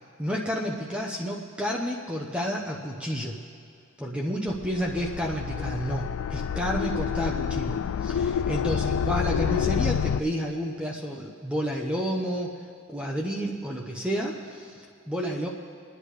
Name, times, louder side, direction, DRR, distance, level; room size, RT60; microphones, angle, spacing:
voice 1, 0.2-3.4 4.0-12.6 12.9-15.5, equal, 5° right, -1 dB, 0.7 m, -30 dB
sound 1, 4.5-10.2, left 7 dB, 75° left, 0.3 m, -28 dB
28.0 x 10.0 x 3.3 m, 2.4 s
head